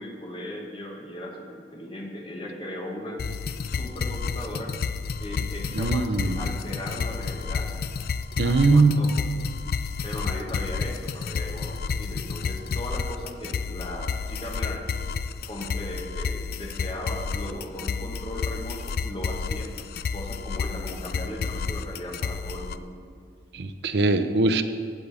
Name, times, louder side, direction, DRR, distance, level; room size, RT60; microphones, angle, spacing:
voice 1, 0.0-3.2 3.7-4.7 5.2-7.7 8.4-9.2 10.0-14.9 15.5-19.7 20.1-22.9, left 1 dB, 30° left, 0 dB, 1.3 m, -37 dB
sound 1, 3.2-22.8, left 5 dB, 55° left, 0.3 m, -31 dB
voice 2, 5.8-6.5 8.4-9.0 23.5-24.6, right 3 dB, 65° right, 10 dB, 0.5 m, -21 dB
16.0 x 6.9 x 3.5 m, 2.1 s
head